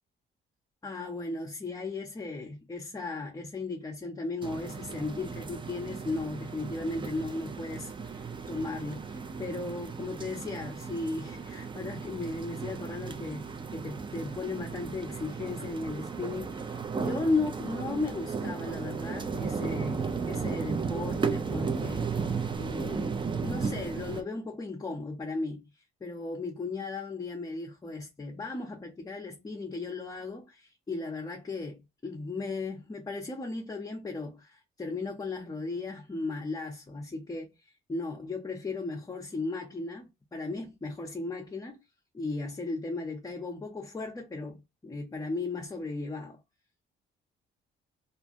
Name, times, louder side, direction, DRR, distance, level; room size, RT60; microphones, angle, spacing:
voice 1, 0.8-25.7 26.0-41.8 42.1-46.4, left 3 dB, 20° left, 0.7 m, -36 dB
sound 1, 4.4-24.2, right 5 dB, 25° right, 0.4 m, -35 dB
2.5 x 2.1 x 2.6 m
cardioid pair, 90°, 20 cm